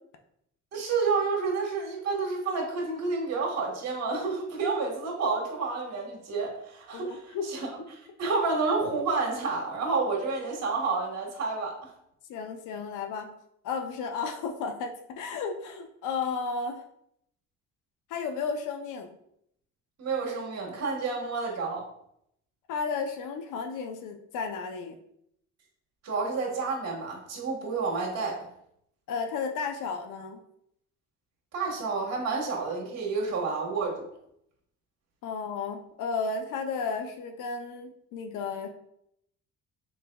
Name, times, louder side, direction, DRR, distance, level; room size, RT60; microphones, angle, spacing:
voice 1, 0.7-7.7 8.2-11.9 20.0-21.8 26.0-28.4 31.5-34.1, right 4 dB, 60° right, -1 dB, 1.3 m, -29 dB
voice 2, 6.9-7.5 12.3-13.3 13.6-16.8 18.1-19.2 22.7-25.0 29.1-30.4 35.2-38.7, left 5 dB, 90° left, 6 dB, 0.5 m, -33 dB
3.9 x 3.8 x 2.2 m, 0.72 s
cardioid pair, 90°, 30 cm